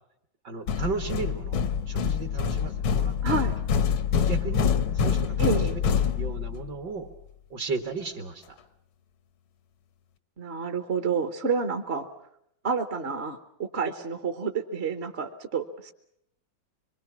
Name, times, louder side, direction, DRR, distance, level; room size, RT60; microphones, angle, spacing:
voice 1, 0.4-3.2 4.2-5.4 5.7-7.1 7.5-8.6, right 4 dB, 60° right, 5 dB, 2.1 m, -35 dB
sound 1, 0.7-6.7, left 7 dB, 85° left, 1.8 m, -26 dB
voice 2, 3.2-3.5 5.4-5.8 10.4-12.1 12.6-15.9, right 4 dB, 40° right, 6 dB, 1.1 m, -29 dB
25.0 x 23.0 x 5.9 m, 0.74 s
omnidirectional pair, 2.1 m